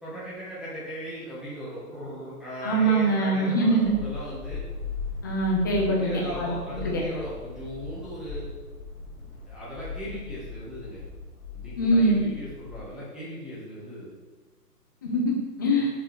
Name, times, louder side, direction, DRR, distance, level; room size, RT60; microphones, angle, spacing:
voice 1, 0.0-4.6 5.8-8.5 9.1-11.0 11.5-14.1, equal, ahead, -10 dB, 1.3 m, -38 dB
voice 2, 2.6-3.9 5.2-6.1 6.4-7.0 11.8-12.2 15.0-15.9, right 1 dB, 15° left, -2 dB, 0.5 m, -23 dB
sound 1, 3.8-12.9, left 4 dB, 50° left, 2.0 m, -39 dB
6.8 x 4.1 x 4.7 m, 1.2 s
figure-of-eight pair, 135°, 47 cm